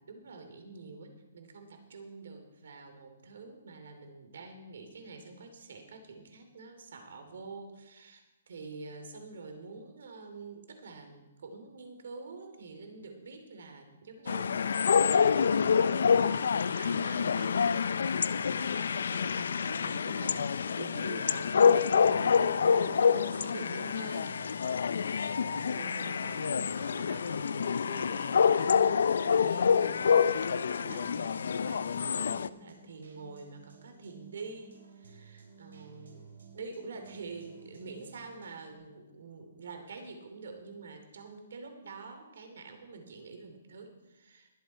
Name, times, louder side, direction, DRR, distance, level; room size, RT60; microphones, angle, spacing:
voice 1, 0.0-36.2 36.5-44.5, right 4 dB, 65° right, 6 dB, 2.7 m, -47 dB
sound 1, 14.3-32.5, left 6 dB, 70° left, 0.4 m, -27 dB
sound 2, 20.0-38.7, right 5 dB, 90° right, 3.5 m, -56 dB
21.5 x 7.5 x 4.5 m, 1.0 s
hypercardioid pair, 165°, 0 cm